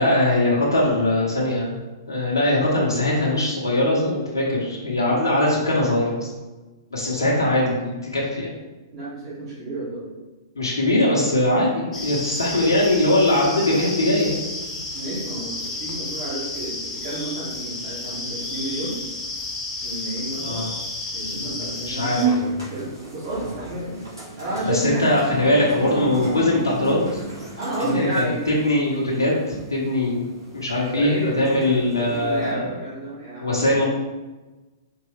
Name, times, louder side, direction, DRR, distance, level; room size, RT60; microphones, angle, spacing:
voice 1, 0.0-1.8 2.1-6.3 6.9-8.5 10.6-14.4 20.4-20.7 21.3-22.4 24.7-27.2 27.9-30.2 30.5-32.8 33.4-33.8, left 1 dB, 70° left, -4 dB, 0.9 m, -21 dB
voice 2, 8.9-10.1 14.9-18.9 19.8-20.7 21.1-22.1 22.7-24.0 24.4-25.1 27.5-28.4 30.9-31.7 32.0-33.8, right 1 dB, 45° right, -10 dB, 1.4 m, -31 dB
sound 1, 11.9-22.2, left 2 dB, 20° left, 0.8 m, -32 dB
sound 2, 22.2-32.5, right 4 dB, 80° right, 1.5 m, -33 dB
4.5 x 3.0 x 3.2 m, 1.2 s
figure-of-eight pair, 105°, 2 cm